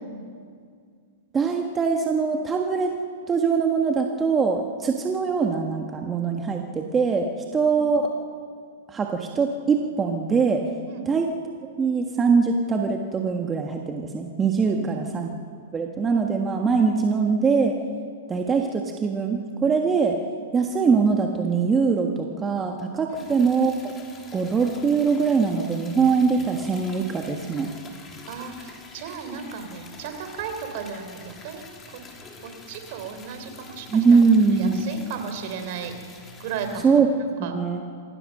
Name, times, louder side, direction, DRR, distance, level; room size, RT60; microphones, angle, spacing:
voice 1, 1.3-2.9 3.3-8.1 8.9-10.6 11.1-11.3 11.8-15.3 15.7-17.7 18.3-20.2 20.5-23.9 24.3-27.7 33.9-34.9 36.8-37.1 37.4-37.9, right 5 dB, 20° right, 2 dB, 1.5 m, -22 dB
voice 2, 14.6-15.0 23.1-23.3 28.3-32.0 32.4-34.2 34.5-35.9 36.4-37.5, right 6 dB, 55° right, 7 dB, 3.6 m, -35 dB
Liquid, 23.2-36.8, left 4 dB, 20° left, 3.3 m, -46 dB
25.0 x 17.0 x 6.6 m, 2.1 s
hypercardioid pair, 125°, 0 cm